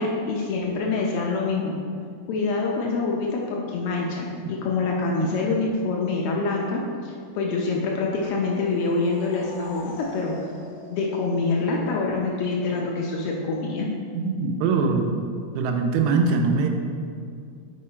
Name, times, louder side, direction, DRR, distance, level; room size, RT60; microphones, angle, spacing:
voice 1, 0.0-1.8 2.3-10.3 10.9-13.9, left 3 dB, 90° left, -2 dB, 1.2 m, -26 dB
sound 1, 8.4-11.9, left 2 dB, 60° left, 1.5 m, -43 dB
voice 2, 14.1-15.2 15.6-16.7, right 4 dB, 80° right, 3 dB, 1.9 m, -22 dB
6.7 x 4.7 x 4.3 m, 2.2 s
omnidirectional pair, 3.4 m